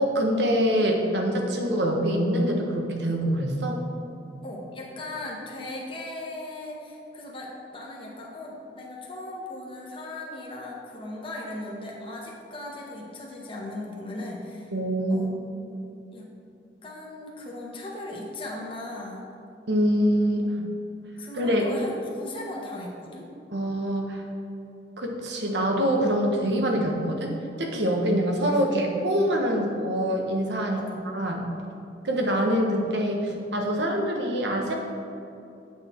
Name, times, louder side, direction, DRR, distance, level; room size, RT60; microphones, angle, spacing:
voice 1, 0.0-3.8 14.7-15.3 19.7-20.4 21.3-21.7 23.5-24.2 25.0-30.8 31.1-31.5 32.0-34.7, equal, 75° right, 1 dB, 1.2 m, -25 dB
voice 2, 4.4-14.7 15.1-15.8 16.1-16.3 16.8-19.2 20.6-20.7 21.2-23.3 29.4-29.6 30.7-31.0, left 2 dB, 30° left, -3 dB, 1.3 m, -38 dB
8.6 x 6.4 x 4.5 m, 2.6 s
head